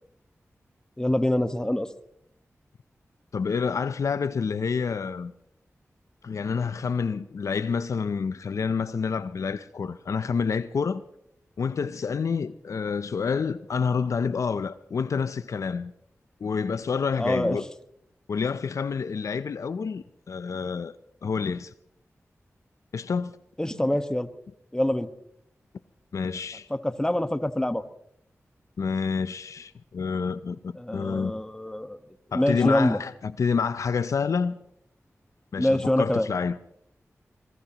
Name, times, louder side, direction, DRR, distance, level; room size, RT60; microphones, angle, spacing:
voice 1, 1.0-1.9 17.2-17.6 23.6-24.3 24.7-25.1 26.7-27.8 30.8-32.0 32.3-33.0 35.6-36.3, left 1 dB, 15° left, 1.3 m, -25 dB
voice 2, 3.3-5.3 6.2-11.0 11.6-15.9 16.4-17.6 18.3-21.0 21.2-21.7 22.9-23.4 26.1-26.7 28.8-31.3 32.3-34.6 35.5-36.6, left 5 dB, 80° left, 0.5 m, -28 dB
23.5 x 21.0 x 3.0 m
cardioid pair, 50°, 5 cm